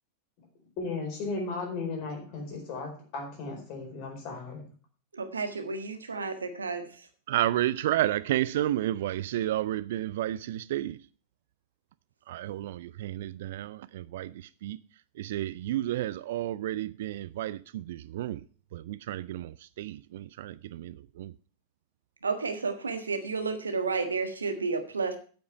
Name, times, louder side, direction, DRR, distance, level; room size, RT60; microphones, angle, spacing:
voice 1, 0.8-4.7, left 3 dB, 45° left, 4.5 m, -35 dB
voice 2, 5.1-6.9 22.2-25.2, right 4 dB, 75° right, 1.4 m, -31 dB
voice 3, 7.3-11.0 12.3-14.8 15.2-18.4 18.7-21.3, right 13 dB, 55° right, 0.4 m, -31 dB
8.7 x 8.6 x 5.7 m
figure-of-eight pair, 90°, 0 cm